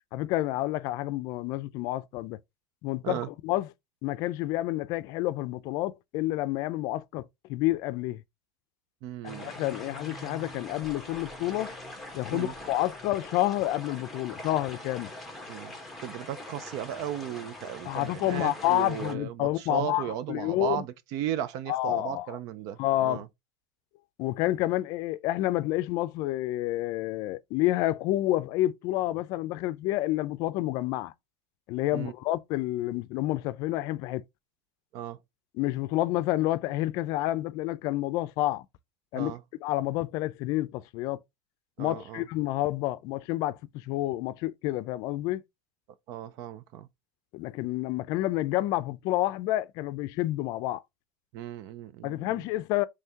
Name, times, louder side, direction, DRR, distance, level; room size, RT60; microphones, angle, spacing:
voice 1, 0.1-2.4 2.8-3.7 4.0-7.2 7.5-8.2 9.4-11.8 12.1-15.1 17.9-20.8 21.7-22.4 22.8-23.2 24.2-31.1 31.7-34.2 35.5-38.7 39.1-39.3 39.6-41.2 41.8-45.4 47.3-50.8 52.0-52.8, left 16 dB, 55° left, 0.5 m, -29 dB
voice 2, 9.0-9.5 12.3-12.5 15.5-15.7 16.0-22.8 23.0-23.3 31.9-32.1 34.9-35.2 39.1-39.4 41.8-42.2 46.1-46.9 51.3-52.4, right 11 dB, 55° right, 0.5 m, -35 dB
sound 1, 9.3-19.1, left 1 dB, ahead, 1.1 m, -43 dB
5.6 x 3.2 x 2.8 m
cardioid pair, 175°, 7 cm